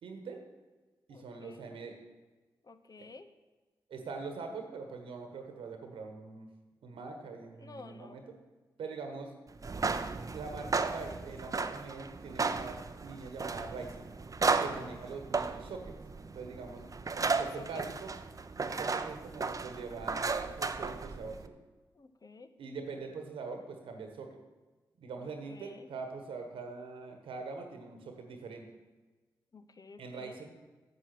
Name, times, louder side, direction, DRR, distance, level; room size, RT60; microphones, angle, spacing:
voice 1, 0.0-0.5 1.1-2.0 3.0-3.1 3.9-6.5 6.8-8.4 8.8-9.3 10.3-14.1 14.6-15.9 16.3-16.8 17.1-18.1 18.6-21.5 22.6-24.4 25.0-28.7 30.0-30.5, right 4 dB, 85° right, 5 dB, 1.3 m, -43 dB
voice 2, 1.1-1.6 2.6-3.3 7.6-8.2 14.5-14.9 17.2-17.8 21.9-22.5 25.2-25.9 29.5-30.4, left 4 dB, 45° left, 10 dB, 0.9 m, -52 dB
sound 1, 9.6-21.5, right 4 dB, 40° right, 0.6 m, -35 dB
8.3 x 7.6 x 6.0 m, 1.3 s
supercardioid pair, 45°, 9 cm